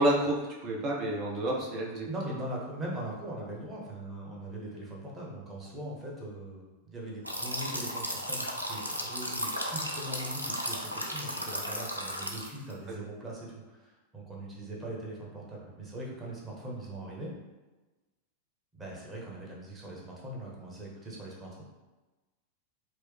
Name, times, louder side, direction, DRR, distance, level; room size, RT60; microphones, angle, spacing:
voice 1, 0.0-2.1 12.9-13.0, right 1 dB, 35° right, -2 dB, 0.8 m, -29 dB
voice 2, 2.1-17.3 18.7-21.6, right 1 dB, 20° right, -4 dB, 1.1 m, -41 dB
sound 1, 7.2-12.7, equal, 85° right, 0.4 m, -35 dB
4.7 x 2.1 x 3.3 m, 1.2 s
figure-of-eight pair, 90°, 0 cm